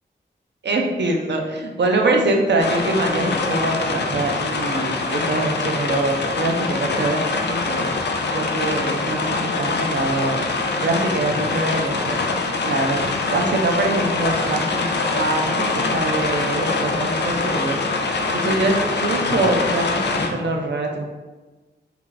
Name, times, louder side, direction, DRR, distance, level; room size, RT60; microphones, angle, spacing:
voice 1, 0.6-7.9 8.3-10.4 10.8-12.2 12.6-13.0 13.3-17.8 18.4-21.0, right 2 dB, 70° right, 1 dB, 0.5 m, -23 dB
sound 1, 2.6-20.3, left 3 dB, 70° left, 0.4 m, -24 dB
2.9 x 2.4 x 3.8 m, 1.2 s
wide cardioid pair, 100°, 19 cm